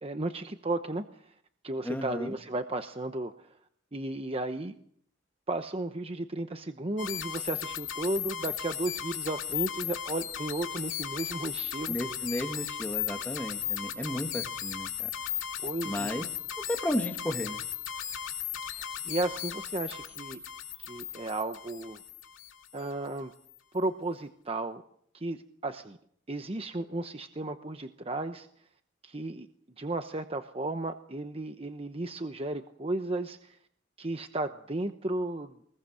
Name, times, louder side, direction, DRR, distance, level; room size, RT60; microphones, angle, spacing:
voice 1, 0.0-1.3 1.6-3.6 3.9-4.8 5.5-12.0 15.6-16.1 18.7-20.4 20.8-22.0 22.7-23.3 23.7-24.8 25.1-26.0 26.3-28.5 29.0-29.5 29.8-33.6 34.0-35.6, right 2 dB, 30° right, 7 dB, 0.9 m, -34 dB
voice 2, 1.8-2.4 11.9-15.1 15.8-16.3 16.7-17.6, equal, 10° left, 4 dB, 1.8 m, -33 dB
sound 1, 7.0-22.8, left 10 dB, 85° left, 2.6 m, -36 dB
23.5 x 20.5 x 6.5 m, 0.66 s
head